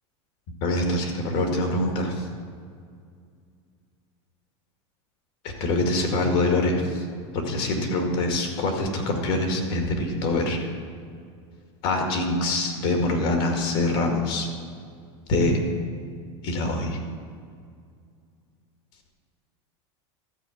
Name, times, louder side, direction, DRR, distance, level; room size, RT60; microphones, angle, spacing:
voice 1, 0.6-2.3 5.6-7.0 7.3-10.7 11.8-14.5 15.3-15.6 16.4-17.0, left 2 dB, 60° left, 2 dB, 2.0 m, -24 dB
13.0 x 4.7 x 8.0 m, 2.2 s
supercardioid pair, 145°, 15 cm